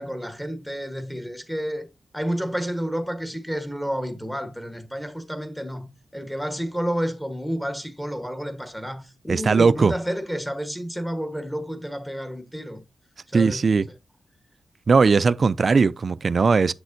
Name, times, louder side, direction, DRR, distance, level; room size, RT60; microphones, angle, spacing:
voice 1, 0.0-1.9 2.1-12.8 13.3-13.7, equal, 5° left, 1.2 m, -30 dB
voice 2, 9.3-9.9 13.3-13.8 14.9-16.7, right 4 dB, 50° right, 0.3 m, -19 dB
7.5 x 6.3 x 2.6 m
wide cardioid pair, 100°, 0 cm